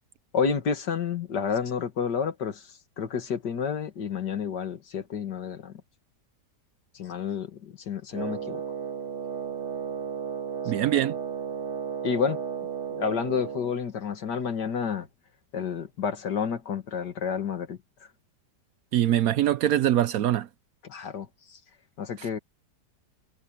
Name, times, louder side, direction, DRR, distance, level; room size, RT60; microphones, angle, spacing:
voice 1, 0.3-2.7 3.0-5.7 6.9-8.6 12.0-12.4 12.9-15.1 15.5-17.8 20.8-21.6 22.0-22.4, left 6 dB, 80° left, 2.3 m, -30 dB
Wind instrument woodwind instrument, 8.1-13.8, right 7 dB, 40° right, 2.2 m, -34 dB
voice 2, 10.7-11.1 18.9-20.5, right 12 dB, 70° right, 0.9 m, -23 dB
omnidirectional pair, 1.8 m